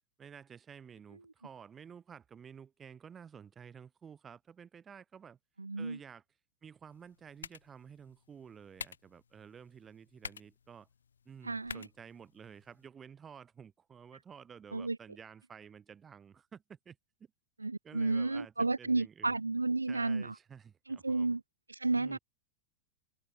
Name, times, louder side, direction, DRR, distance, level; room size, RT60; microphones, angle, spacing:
voice 1, 0.2-5.4 5.8-6.2 6.6-10.9 11.2-17.0 17.8-19.3 19.9-21.3 21.9-22.2, right 7 dB, 20° right, 4.9 m, -52 dB
voice 2, 5.6-6.0 11.4-11.8 14.7-15.0 17.6-20.3 20.9-21.4 21.7-22.2, right 3 dB, 80° right, 0.8 m, -32 dB
sound 1, 6.9-12.9, left 7 dB, 70° left, 6.0 m, -50 dB
open air
figure-of-eight pair, 90°, 0 cm